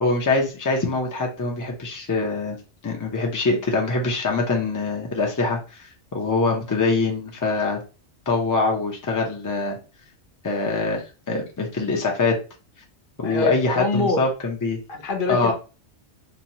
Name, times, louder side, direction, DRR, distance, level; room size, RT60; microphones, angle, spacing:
voice 1, 0.0-2.6 2.8-7.8 8.3-9.8 10.4-12.4 13.2-14.8 15.3-15.5, left 3 dB, 25° left, 0 dB, 0.4 m, -24 dB
voice 2, 13.2-14.2 14.9-15.5, left 3 dB, 55° left, 4 dB, 0.8 m, -25 dB
3.0 x 2.2 x 2.7 m, 0.32 s
omnidirectional pair, 1.2 m